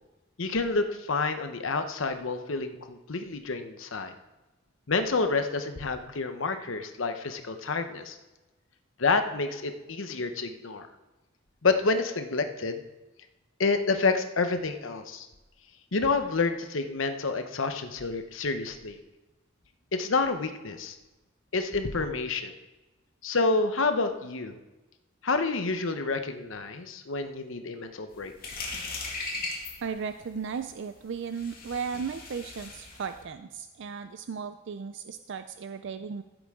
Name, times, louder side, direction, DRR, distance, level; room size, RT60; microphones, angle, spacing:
voice 1, 0.4-4.1 4.9-8.2 9.0-10.9 11.6-12.8 13.6-15.3 15.9-19.0 19.9-21.0 21.5-22.5 23.2-24.6 25.2-28.3, left 3 dB, 75° left, 8 dB, 0.9 m, -28 dB
sound 1, 28.1-33.2, left 3 dB, 50° left, 2.3 m, -38 dB
voice 2, 29.8-36.2, right 6 dB, 65° right, 9 dB, 0.4 m, -36 dB
14.5 x 8.0 x 3.7 m, 1.1 s
head